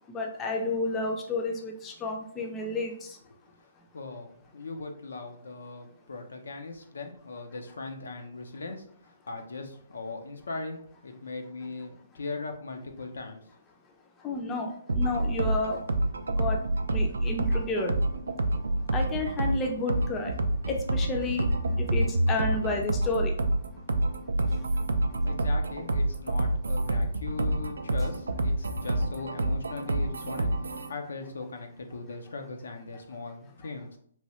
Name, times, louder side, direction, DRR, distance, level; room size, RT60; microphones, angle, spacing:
voice 1, 0.1-3.2 14.2-15.8 16.4-16.6 16.9-18.0 18.9-20.3 20.7-21.4 21.8-23.3 24.6-24.7, left 2 dB, 20° left, 2 dB, 0.4 m, -31 dB
voice 2, 3.9-13.4 25.2-34.0, left 3 dB, 80° left, 5 dB, 0.5 m, -39 dB
sound 1, 14.9-30.9, right 1 dB, 90° right, 0.3 m, -28 dB
3.0 x 2.2 x 2.9 m, 0.63 s
hypercardioid pair, 145°, 0 cm